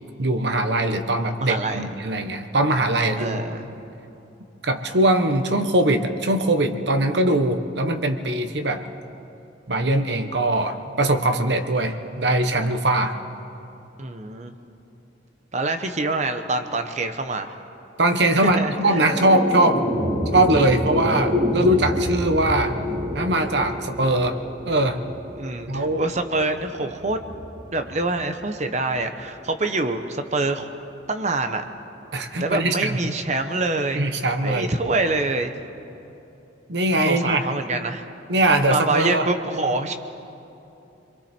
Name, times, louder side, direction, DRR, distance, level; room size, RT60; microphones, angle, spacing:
voice 1, 0.2-3.6 4.6-8.8 9.7-13.2 18.0-19.8 20.3-22.8 23.1-24.4 24.6-25.0 25.7-26.1 32.1-33.1 33.9-34.7 36.7-37.5 38.3-39.3, right 1 dB, 65° right, 7 dB, 1.2 m, -21 dB
voice 2, 1.4-1.9 3.2-3.7 14.0-14.5 15.5-17.6 18.4-19.0 25.4-27.2 27.7-30.7 31.1-31.6 32.4-34.0 34.4-35.5 37.1-38.0 38.7-39.9, right 2 dB, 40° right, 7 dB, 1.0 m, -25 dB
sound 1, 18.3-28.8, left 1 dB, 20° right, 3.5 m, -28 dB
28.5 x 22.5 x 4.5 m, 2.8 s
head